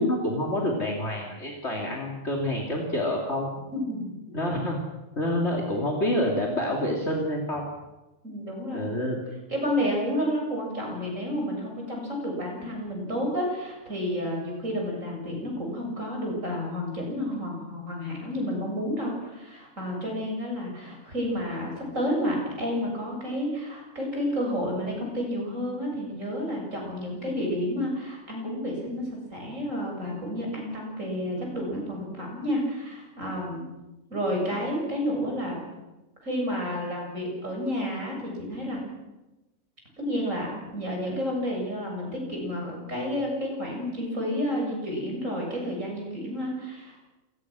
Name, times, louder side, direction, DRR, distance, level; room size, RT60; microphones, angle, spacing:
voice 1, 0.0-3.5 4.3-4.8 5.2-7.7 8.7-9.2, left 1 dB, 60° left, 0 dB, 3.3 m, -27 dB
voice 2, 3.7-4.4 8.2-8.9 9.5-33.6 34.1-35.6 36.2-38.8 40.0-47.1, equal, 80° right, 0 dB, 7.9 m, -30 dB
27.5 x 19.5 x 6.3 m, 1.0 s
omnidirectional pair, 1.3 m